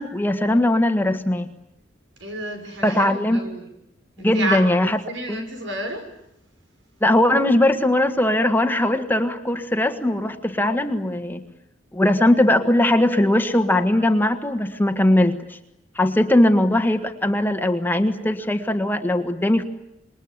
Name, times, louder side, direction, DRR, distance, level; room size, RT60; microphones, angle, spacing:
voice 1, 0.0-1.5 2.8-3.4 4.2-5.0 5.3-5.4 7.0-11.4 11.9-15.6 15.9-19.6, left 1 dB, 10° left, 7 dB, 1.6 m, -20 dB
voice 2, 2.2-3.7 4.2-6.0, right 2 dB, 80° right, 5 dB, 6.7 m, -30 dB
27.0 x 22.5 x 9.6 m, 0.80 s
head